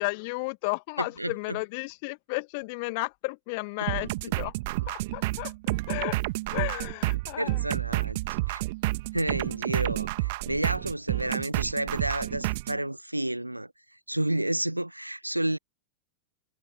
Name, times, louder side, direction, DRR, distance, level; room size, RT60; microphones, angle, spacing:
voice 1, 0.0-4.5 4.9-5.5 5.9-6.2 6.5-7.6 9.9-10.0, left 30 dB, 45° left, 1.8 m, -33 dB
voice 2, 1.0-1.6 3.8-3.9 7.4-8.2 8.5-8.6 9.1-13.7 14.1-15.6, right 1 dB, 85° right, 0.5 m, -30 dB
sound 1, 3.9-12.8, right 21 dB, 50° right, 1.7 m, -30 dB
figure-of-eight pair, 90°, 0 cm